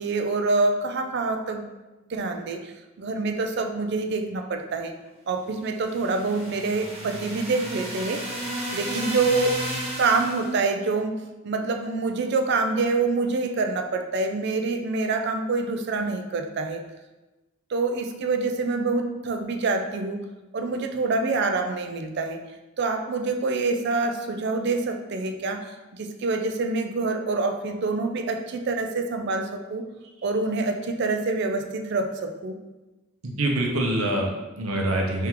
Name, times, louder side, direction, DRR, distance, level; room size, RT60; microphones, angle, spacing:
voice 1, 0.0-1.6 2.1-2.7 3.0-4.9 5.3-8.2 8.7-9.6 10.0-16.8 17.7-20.2 20.5-22.4 22.8-29.9 30.2-32.6, right 3 dB, 50° right, 5 dB, 0.3 m, -26 dB
sound 1, 5.6-10.6, right 1 dB, 30° right, 0.7 m, -33 dB
voice 2, 33.2-35.3, right 1 dB, 75° right, 0 dB, 0.7 m, -25 dB
3.6 x 3.4 x 3.0 m, 1.1 s
head